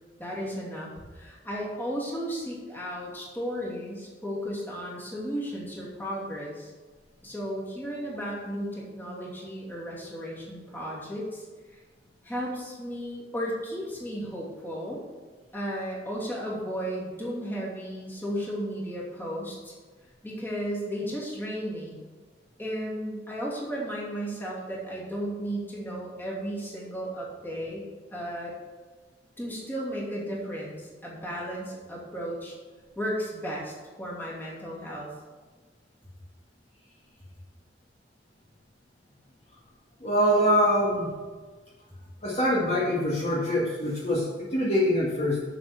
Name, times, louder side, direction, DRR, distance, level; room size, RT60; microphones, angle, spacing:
voice 1, 0.2-6.7 7.2-11.8 12.2-15.0 15.5-19.7 20.2-22.0 22.6-27.8 28.1-28.5 29.4-32.6 33.0-35.1, equal, 10° left, -5 dB, 2.7 m, -34 dB
voice 2, 40.0-41.1 42.2-45.4, equal, 40° left, -5 dB, 1.9 m, -24 dB
7.7 x 6.9 x 6.7 m, 1.4 s
head